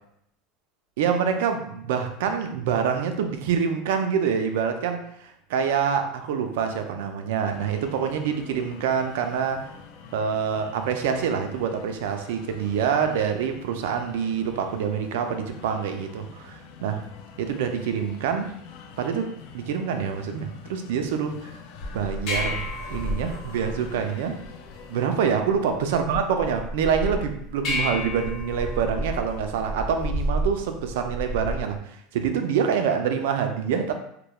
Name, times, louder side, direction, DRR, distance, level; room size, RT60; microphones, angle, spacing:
voice 1, 1.0-9.7 10.1-17.0 17.4-18.5 19.0-21.6 21.9-24.4 24.9-33.9, right 7 dB, 80° right, 6 dB, 0.3 m, -26 dB
sound 1, 7.4-25.1, left 5 dB, 60° left, 0.3 m, -46 dB
sound 2, 21.8-31.8, equal, 45° left, 0.9 m, -32 dB
2.9 x 2.1 x 2.2 m, 0.72 s
supercardioid pair, 150°, 0 cm